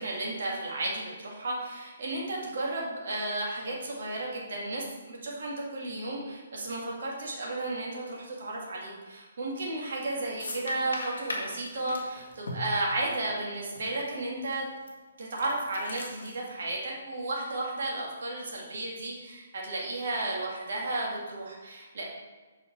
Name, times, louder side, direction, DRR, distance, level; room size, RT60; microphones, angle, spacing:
voice 1, 0.0-14.7 15.2-22.0, right 2 dB, 60° right, -3 dB, 2.3 m, -33 dB
sound 1, 9.8-10.0 10.4-13.4 13.7-13.8 14.5-14.9 15.3-16.4, left 2 dB, 70° left, 1.5 m, -38 dB
5.6 x 5.0 x 6.0 m, 1.3 s
figure-of-eight pair, 135°, 0 cm